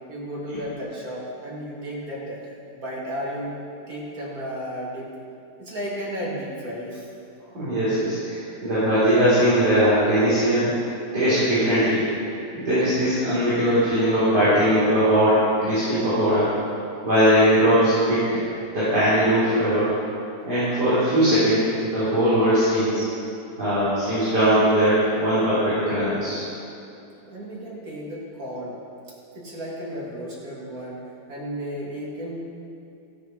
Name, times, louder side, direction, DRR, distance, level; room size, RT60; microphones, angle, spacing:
voice 1, 0.1-2.5 2.7-3.6 3.9-5.1 5.6-7.1 27.3-28.8 29.3-32.4, equal, 55° right, -5 dB, 2.8 m, -33 dB
voice 2, 7.5-10.7 11.1-12.0 12.5-16.5 17.0-18.2 18.7-19.9 20.4-23.0 23.6-26.4, equal, 70° right, -13 dB, 4.0 m, -20 dB
13.5 x 7.1 x 6.0 m, 2.7 s
omnidirectional pair, 1.8 m